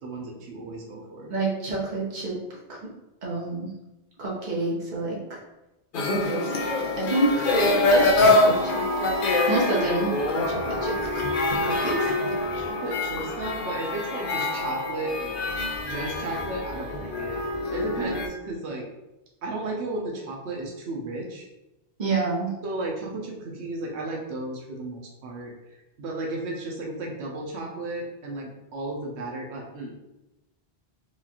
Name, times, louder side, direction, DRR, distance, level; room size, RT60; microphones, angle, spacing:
voice 1, 0.0-1.3 11.7-12.2 12.5-15.3 15.8-17.4 17.7-18.9 19.4-21.5 22.6-25.5 26.0-29.9, right 2 dB, 85° right, -1 dB, 1.0 m, -34 dB
voice 2, 1.3-2.3 3.2-3.7 4.2-5.2 6.1-6.4 7.0-7.3 7.9-8.8 9.5-10.9 11.6-11.9 12.2-12.3 22.0-22.5, right 2 dB, 45° right, -5 dB, 1.1 m, -27 dB
sound 1, 5.9-18.3, left 2 dB, 60° left, 0.7 m, -25 dB
4.6 x 2.4 x 2.8 m, 0.97 s
omnidirectional pair, 1.1 m